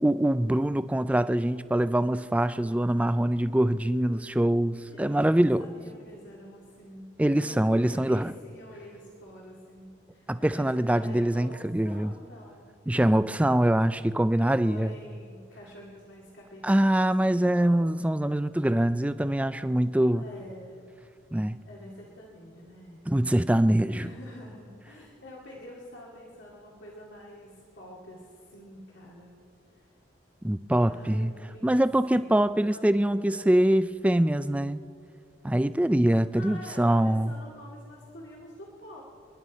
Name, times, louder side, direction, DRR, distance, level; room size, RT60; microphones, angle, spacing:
voice 1, 0.0-5.7 7.2-8.3 10.3-12.1 12.9-14.9 16.6-20.3 21.3-21.6 23.1-24.1 30.4-31.3 31.6-34.8 35.4-37.3, right 1 dB, 5° right, 0.3 m, -24 dB
voice 2, 4.7-11.6 11.8-12.6 14.4-17.7 20.0-20.7 21.6-23.0 23.9-29.3 29.7-29.9 30.8-32.3 32.7-32.9 33.3-33.5 36.3-39.0, left 1 dB, 85° left, 2.3 m, -47 dB
29.0 x 11.0 x 4.2 m
head